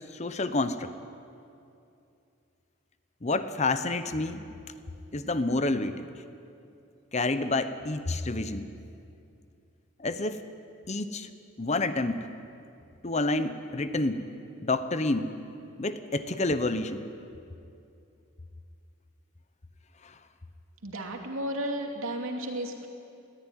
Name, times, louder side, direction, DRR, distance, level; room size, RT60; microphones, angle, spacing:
voice 1, 0.1-0.9 3.2-4.5 5.1-6.1 7.1-8.7 10.0-10.4 10.9-11.3 11.6-12.3 13.0-14.2 14.6-15.3 15.8-17.0, left 2 dB, 30° left, 11 dB, 0.8 m, -28 dB
voice 2, 20.8-22.9, right 1 dB, 75° right, 2 dB, 2.7 m, -33 dB
20.0 x 14.5 x 9.9 m, 2.6 s
head